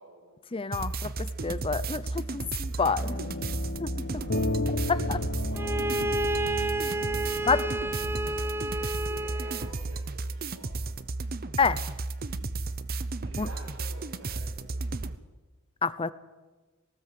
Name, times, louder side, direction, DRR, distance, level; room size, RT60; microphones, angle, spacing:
voice 1, 0.0-0.4 1.3-1.6 2.6-3.6 4.1-4.5 4.8-6.3 6.8-11.0 13.2-14.9, right 1 dB, 90° right, -4 dB, 4.7 m, -49 dB
voice 2, 0.5-3.1 3.8-3.9 4.9-5.2 7.5-7.6 11.6-11.9 13.4-13.5 15.8-16.1, left 5 dB, 25° left, 16 dB, 0.7 m, -28 dB
sound 1, 0.7-15.2, right 3 dB, 45° right, 0.8 m, -34 dB
sound 2, 3.0-8.7, left 2 dB, 55° left, 1.0 m, -34 dB
Bowed string instrument, 5.5-9.8, right 2 dB, 10° right, 0.5 m, -31 dB
18.5 x 18.5 x 7.7 m, 1.3 s
head